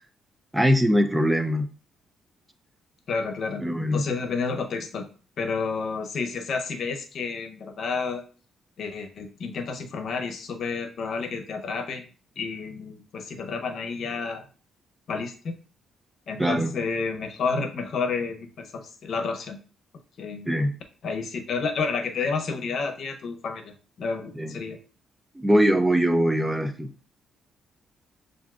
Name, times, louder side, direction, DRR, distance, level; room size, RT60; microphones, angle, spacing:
voice 1, 0.5-1.7 3.6-4.0 16.4-16.7 20.5-20.7 24.3-24.5 25.4-26.9, equal, 10° right, 7 dB, 0.5 m, -22 dB
voice 2, 3.1-3.6 3.9-5.1 5.4-8.2 8.8-12.0 12.4-14.4 15.1-15.6 16.3-19.6 20.2-20.5 21.0-23.7 24.0-24.8, left 4 dB, 60° left, 5 dB, 0.8 m, -30 dB
7.0 x 2.6 x 2.4 m, 0.38 s
cardioid pair, 90°, 0 cm